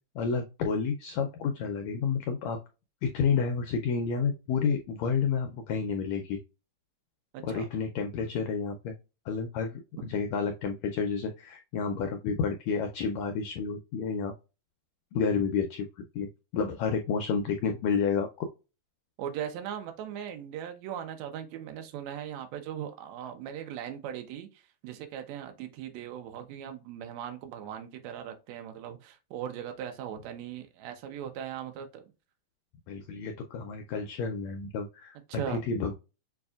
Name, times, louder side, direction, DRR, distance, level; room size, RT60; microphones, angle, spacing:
voice 1, 0.1-2.6 3.0-6.4 7.4-9.0 9.3-14.3 15.1-15.9 16.1-18.5 32.9-35.9, left 5 dB, 85° left, 1.5 m, -30 dB
voice 2, 7.3-7.7 19.2-32.0 35.3-35.6, right 9 dB, 70° right, 1.7 m, -39 dB
6.9 x 2.4 x 2.3 m
omnidirectional pair, 3.8 m